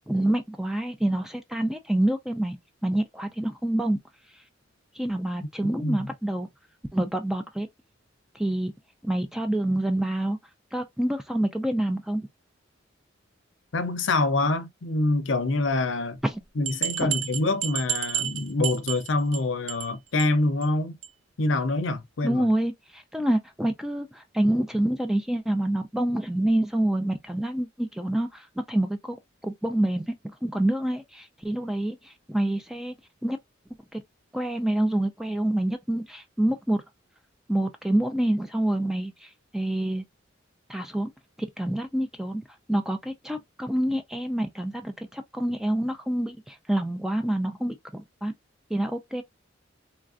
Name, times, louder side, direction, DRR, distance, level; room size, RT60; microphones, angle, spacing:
voice 1, 0.1-2.6 2.8-4.0 5.0-6.5 6.9-7.7 8.3-8.7 9.0-10.4 10.7-12.2 16.2-16.4 22.2-29.2 29.4-30.1 30.4-32.9 33.2-33.4 33.9-34.0 34.3-36.8 37.5-40.0 40.7-41.1 41.6-42.4 42.7-48.3 48.7-49.2, right 1 dB, ahead, 0.3 m, -27 dB
voice 2, 5.6-6.0 13.7-16.2 16.6-21.0 21.4-22.5, left 2 dB, 70° left, 0.6 m, -26 dB
sound 1, 16.2-16.3 16.7-19.4 19.7-19.9 20.2-20.3 20.6-20.7 21.0-21.1, right 10 dB, 70° right, 0.5 m, -30 dB
3.2 x 2.4 x 2.4 m
head